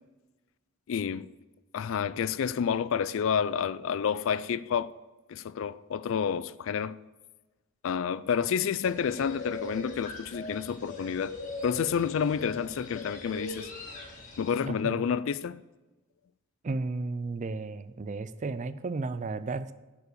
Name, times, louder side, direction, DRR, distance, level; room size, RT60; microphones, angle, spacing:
voice 1, 0.9-1.3 1.7-4.9 5.3-7.0 7.8-11.3 11.6-13.7 14.4-15.6, left 7 dB, 60° left, 0.3 m, -29 dB
sound 1, 8.8-14.6, left 1 dB, 35° left, 1.6 m, -41 dB
voice 2, 14.6-15.0 16.6-19.7, right 3 dB, 35° right, 0.4 m, -33 dB
10.5 x 4.9 x 6.7 m
head